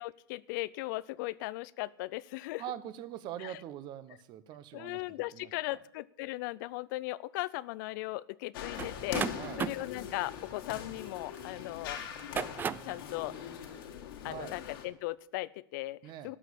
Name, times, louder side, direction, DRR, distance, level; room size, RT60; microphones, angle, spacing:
voice 1, 0.0-2.6 3.4-3.6 4.7-12.0 12.8-13.5 14.2-16.4, left 19 dB, 60° left, 19 dB, 0.4 m, -38 dB
voice 2, 2.6-5.0 5.3-5.5 9.3-9.6 14.2-14.5 16.0-16.3, right 11 dB, 40° right, 14 dB, 0.9 m, -43 dB
sound 1, 8.5-14.9, left 8 dB, 75° left, 2.2 m, -42 dB
sound 2, 8.8-11.5 12.1-13.0, right 7 dB, 15° right, 0.4 m, -36 dB
12.5 x 6.3 x 8.4 m, 0.72 s
supercardioid pair, 140°, 12 cm